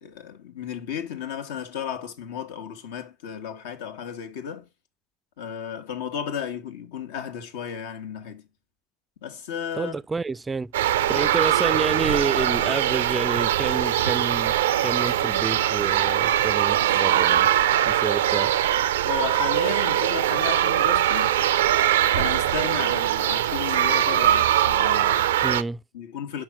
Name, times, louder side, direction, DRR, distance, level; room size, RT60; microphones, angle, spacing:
voice 1, 0.0-4.7 5.4-8.5 9.2-9.9 19.0-21.4 22.1-25.3 25.9-26.4, left 8 dB, 80° left, 1.2 m, -34 dB
voice 2, 9.8-17.5 17.9-18.5 25.4-25.8, right 4 dB, 20° right, 0.3 m, -29 dB
sound 1, 10.7-25.6, right 11 dB, 90° right, 0.4 m, -22 dB
5.7 x 4.8 x 6.0 m
hypercardioid pair, 85°, 0 cm